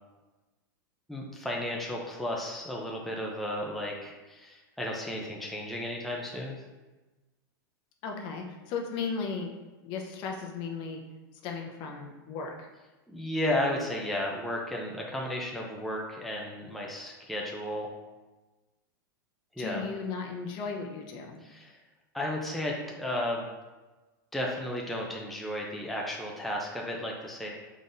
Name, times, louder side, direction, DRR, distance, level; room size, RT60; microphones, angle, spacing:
voice 1, 1.1-6.6 13.1-17.9 19.6-19.8 21.4-21.8 22.1-23.5 24.3-27.5, left 1 dB, ahead, -2 dB, 0.6 m, -33 dB
voice 2, 8.0-9.5 9.8-11.0 11.4-12.7 19.6-21.4, left 5 dB, 45° left, 2 dB, 0.7 m, -36 dB
5.1 x 3.8 x 2.6 m, 1.2 s
hypercardioid pair, 120°, 11 cm